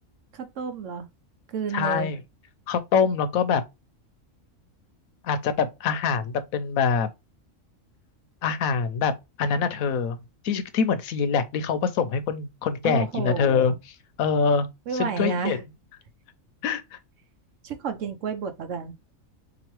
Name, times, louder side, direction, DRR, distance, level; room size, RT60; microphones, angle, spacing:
voice 1, 0.3-1.1 1.5-2.1 12.8-13.8 14.9-15.6 17.6-18.9, right 6 dB, 70° right, 1.1 m, -31 dB
voice 2, 1.7-2.2 2.7-3.6 5.2-7.1 8.4-9.1 9.4-10.2 10.4-13.7 14.2-14.7 15.0-15.6 16.6-16.8, left 6 dB, 80° left, 1.1 m, -24 dB
4.0 x 2.9 x 3.0 m
omnidirectional pair, 1.4 m